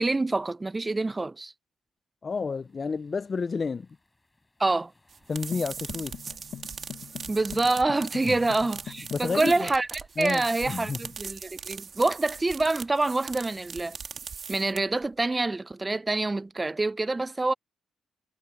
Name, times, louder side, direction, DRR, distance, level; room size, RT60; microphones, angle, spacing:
voice 1, 0.0-1.5 4.6-4.9 7.3-14.0 14.5-17.5, right 2 dB, 20° right, 0.6 m, -26 dB
voice 2, 2.2-3.9 5.3-6.4 8.2-8.4 9.1-9.7 10.2-11.0, left 5 dB, 35° left, 0.4 m, -31 dB
sound 1, 2.3-13.0, left 2 dB, 15° left, 7.2 m, -68 dB
sound 2, 5.1-15.1, right 6 dB, 45° right, 2.0 m, -40 dB
sound 3, 5.5-9.7, left 9 dB, 65° left, 1.0 m, -42 dB
cardioid pair, 90°, 0 cm